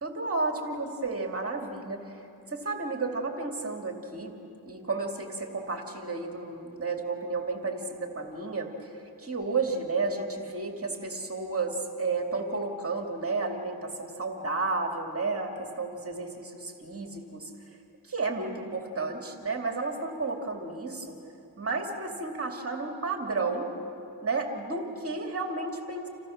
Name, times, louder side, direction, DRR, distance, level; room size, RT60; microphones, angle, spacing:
voice 1, 0.0-2.0 2.5-4.3 4.7-17.5 18.1-21.2 21.6-23.7 24.2-26.1, right 3 dB, 30° right, 2 dB, 2.5 m, -32 dB
30.0 x 28.0 x 6.5 m, 2.7 s
wide cardioid pair, 115°, 43 cm